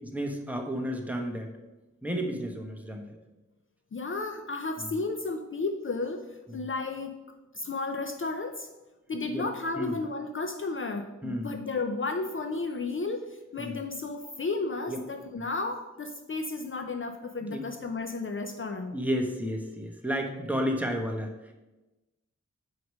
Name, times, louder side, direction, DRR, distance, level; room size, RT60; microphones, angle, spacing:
voice 1, 0.0-1.5 2.0-3.2 4.8-4.9 6.5-6.7 9.3-9.5 9.7-9.9 11.2-11.5 13.6-13.8 14.9-15.0 17.4-17.7 18.9-21.5, equal, 5° right, 2 dB, 1.0 m, -32 dB
voice 2, 3.9-6.3 6.5-7.2 7.5-8.7 9.1-19.0, left 3 dB, 45° left, 6 dB, 0.5 m, -33 dB
4.9 x 4.7 x 6.2 m, 1.1 s
wide cardioid pair, 85°, 30 cm